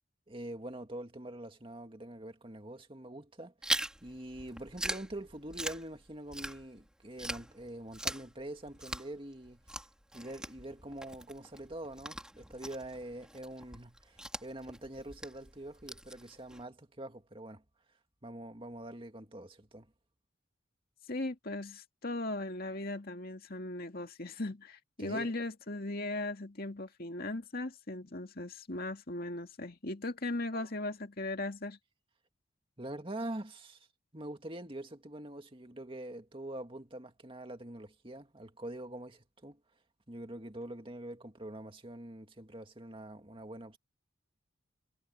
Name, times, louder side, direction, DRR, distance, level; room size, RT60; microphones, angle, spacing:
voice 1, 0.3-3.5 4.0-9.6 10.1-17.6 18.2-19.9 25.0-25.3 30.5-30.7 32.8-33.9 34.1-39.6 40.1-43.8, right 1 dB, 25° right, 2.3 m, -44 dB
Chewing mastication, 3.6-6.9 7.2-16.6, right 1 dB, 5° right, 3.6 m, -41 dB
voice 2, 21.1-31.8, left 2 dB, 50° left, 2.3 m, -38 dB
head